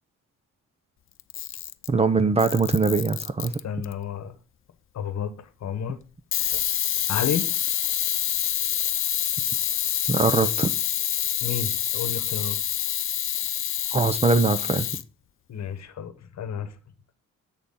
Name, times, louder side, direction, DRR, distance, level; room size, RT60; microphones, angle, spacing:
Camera, 1.2-2.0 2.4-3.9 6.3-15.0, left 10 dB, 45° left, 0.5 m, -27 dB
voice 1, 1.9-3.5 10.1-10.7 13.9-14.9, right 4 dB, 20° right, 0.6 m, -22 dB
voice 2, 3.6-4.4 4.9-6.0 7.1-7.5 11.4-12.6 15.5-16.8, left 8 dB, 60° left, 1.1 m, -31 dB
8.1 x 6.6 x 3.7 m
cardioid pair, 125°, 31 cm